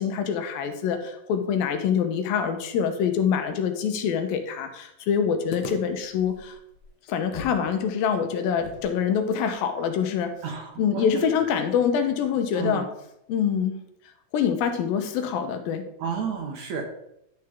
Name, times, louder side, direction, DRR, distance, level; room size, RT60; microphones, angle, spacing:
voice 1, 0.0-6.5 7.1-10.3 10.8-12.9 13.3-13.8 14.3-15.9, left 7 dB, 80° left, 7 dB, 2.7 m, -25 dB
sound 1, 5.5-7.7 7.9-8.0 8.6-11.7, left 5 dB, 65° left, 1.9 m, -41 dB
voice 2, 10.4-11.2 12.5-12.9 16.0-16.8, right 6 dB, 65° right, 2 dB, 2.1 m, -31 dB
11.5 x 6.7 x 3.6 m, 0.79 s
omnidirectional pair, 4.2 m